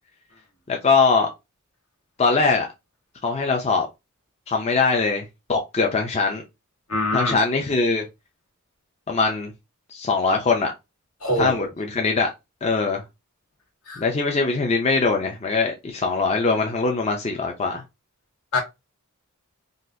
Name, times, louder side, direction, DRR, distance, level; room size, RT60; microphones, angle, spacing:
voice 1, 0.7-1.3 2.2-2.7 3.2-3.9 4.5-6.4 7.1-8.0 9.1-9.5 9.9-10.7 11.4-12.3 12.6-13.0 14.0-17.8, left 4 dB, 30° left, 0.4 m, -22 dB
voice 2, 6.9-7.4 11.2-11.7 13.9-14.0 18.5-18.6, left 1 dB, 75° left, 1.5 m, -24 dB
3.9 x 2.4 x 2.6 m
head